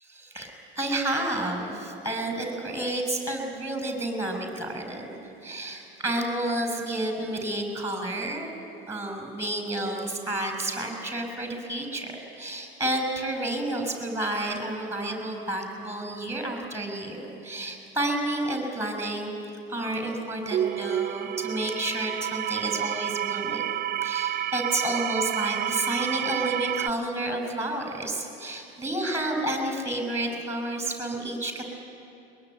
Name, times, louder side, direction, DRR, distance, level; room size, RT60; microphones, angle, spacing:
voice 1, 0.1-8.5 8.9-19.3 19.7-23.7 24.0-31.6, right 1 dB, 10° right, 4 dB, 6.2 m, -30 dB
sound 1, 20.5-26.9, right 12 dB, 30° right, 0.5 m, -29 dB
22.0 x 22.0 x 9.4 m, 2.8 s
hypercardioid pair, 75°, 31 cm